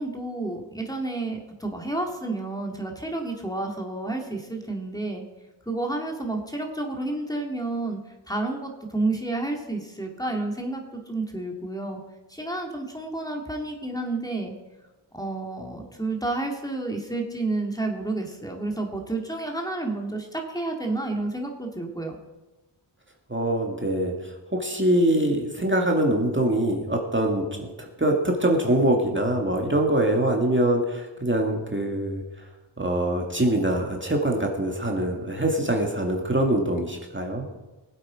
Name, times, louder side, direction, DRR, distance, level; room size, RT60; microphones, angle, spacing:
voice 1, 0.0-5.2 5.6-8.0 8.3-12.0 12.3-14.5 15.1-22.2, right 2 dB, 10° left, 1 dB, 2.2 m, -30 dB
voice 2, 23.3-32.2 32.8-37.5, right 1 dB, 25° right, 1 dB, 2.1 m, -24 dB
19.5 x 8.2 x 4.9 m, 1.1 s
wide cardioid pair, 60°, 48 cm